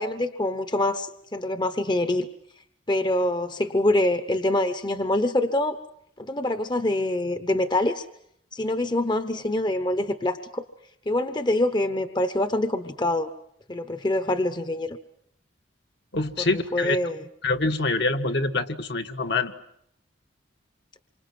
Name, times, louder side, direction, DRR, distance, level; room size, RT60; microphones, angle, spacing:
voice 1, 0.0-2.3 2.9-5.8 6.2-8.0 8.5-10.6 11.1-13.3 13.7-15.0 16.4-17.2, left 1 dB, 25° left, 10 dB, 1.0 m, -25 dB
voice 2, 16.1-17.0 17.4-19.5, left 3 dB, 60° left, 5 dB, 1.5 m, -25 dB
28.0 x 25.5 x 7.8 m, 0.72 s
head